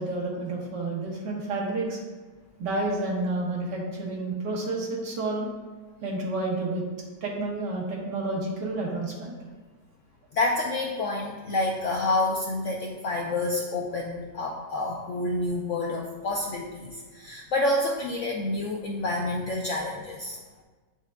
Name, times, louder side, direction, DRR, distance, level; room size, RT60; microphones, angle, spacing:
voice 1, 0.0-2.0 2.6-5.5 6.0-6.8 7.2-9.3, right 2 dB, 80° right, -3 dB, 1.8 m, -30 dB
voice 2, 10.3-20.4, left 2 dB, 70° left, -1 dB, 0.7 m, -28 dB
9.2 x 4.8 x 2.2 m, 1.3 s
omnidirectional pair, 1.8 m